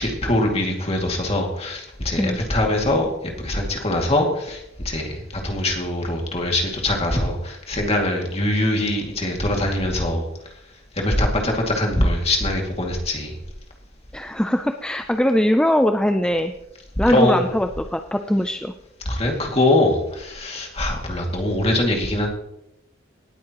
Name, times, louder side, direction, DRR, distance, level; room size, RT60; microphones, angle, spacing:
voice 1, 0.0-3.1 3.4-10.3 11.0-13.3 17.1-17.4 19.1-22.3, left 1 dB, 30° left, 1 dB, 2.3 m, -22 dB
voice 2, 14.1-16.5 17.0-18.7, equal, 5° left, 6 dB, 0.4 m, -21 dB
18.5 x 8.5 x 3.0 m, 0.83 s
head